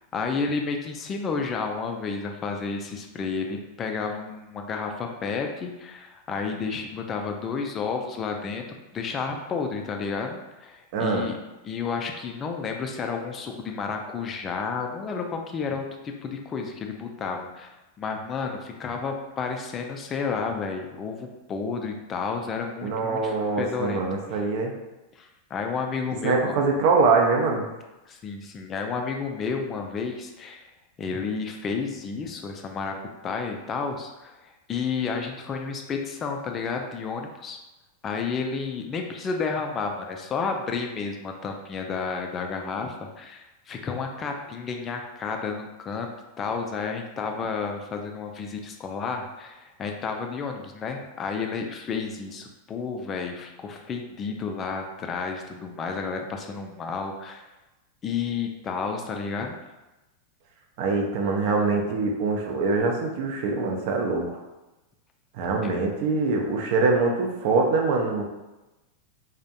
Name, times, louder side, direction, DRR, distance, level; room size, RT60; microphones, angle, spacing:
voice 1, 0.1-8.6 8.9-11.3 11.6-17.7 18.0-24.2 25.1-26.6 28.1-30.7 31.0-33.0 33.2-37.6 38.0-46.1 46.4-57.4 58.0-59.6 65.6-65.7, left 5 dB, 25° left, 3 dB, 0.3 m, -31 dB
voice 2, 10.9-11.2 22.8-24.7 26.2-27.7 60.8-64.3 65.3-68.2, right 3 dB, 45° right, 1 dB, 0.4 m, -23 dB
2.4 x 2.0 x 2.7 m, 1.0 s
figure-of-eight pair, 90°, 0 cm